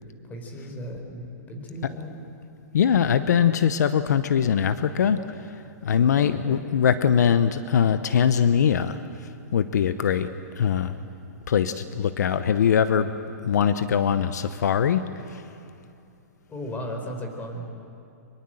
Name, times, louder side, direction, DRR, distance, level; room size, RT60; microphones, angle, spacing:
voice 1, 0.2-2.1 6.2-6.6 16.5-17.7, equal, 15° left, 3 dB, 4.4 m, -36 dB
voice 2, 2.7-10.3 10.6-10.9 11.5-13.1 13.4-15.4, left 8 dB, 75° left, 12 dB, 0.9 m, -22 dB
24.0 x 22.0 x 7.8 m, 2.7 s
hypercardioid pair, 135°, 9 cm